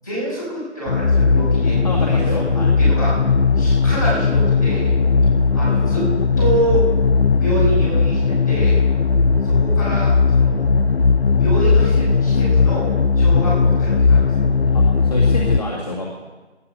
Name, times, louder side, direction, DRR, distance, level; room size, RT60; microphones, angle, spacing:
voice 1, 0.0-2.3 2.5-3.2 3.6-4.9 5.5-6.1 6.4-6.8 7.4-8.8 9.4-10.7 11.4-14.2, right 1 dB, 15° left, -9 dB, 5.8 m, -26 dB
sound 1, 0.9-15.6, left 4 dB, 60° left, 0.7 m, -17 dB
voice 2, 1.8-2.7 14.7-16.3, left 1 dB, 35° left, -4 dB, 2.0 m, -28 dB
18.5 x 11.5 x 5.4 m, 1.2 s
figure-of-eight pair, 175°, 34 cm